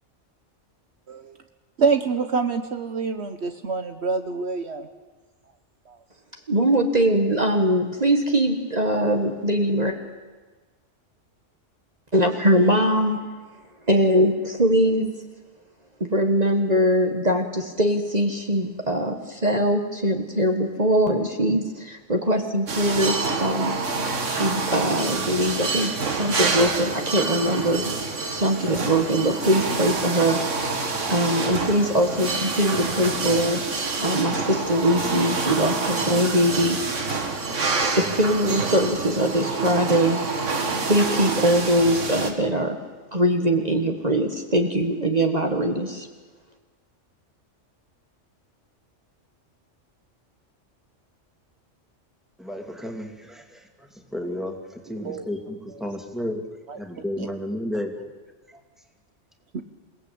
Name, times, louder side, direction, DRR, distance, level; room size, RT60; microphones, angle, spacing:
voice 1, 1.8-4.9 5.9-6.0 55.0-55.3 56.7-56.8 57.2-57.3, right 5 dB, 65° right, 8 dB, 1.3 m, -26 dB
voice 2, 6.5-10.0 12.1-13.2 13.9-15.1 16.0-23.8 24.3-28.0 28.3-30.4 31.1-33.6 34.0-36.8 37.9-40.2 40.8-42.8 43.1-46.1, equal, 35° right, 4 dB, 1.7 m, -22 dB
sound 1, 22.7-42.3, right 4 dB, 80° right, 2.2 m, -27 dB
voice 3, 52.4-56.5 56.7-58.0 58.5-58.6, left 1 dB, ahead, 3 dB, 2.6 m, -32 dB
28.0 x 18.0 x 8.6 m, 1.3 s
omnidirectional pair, 1.2 m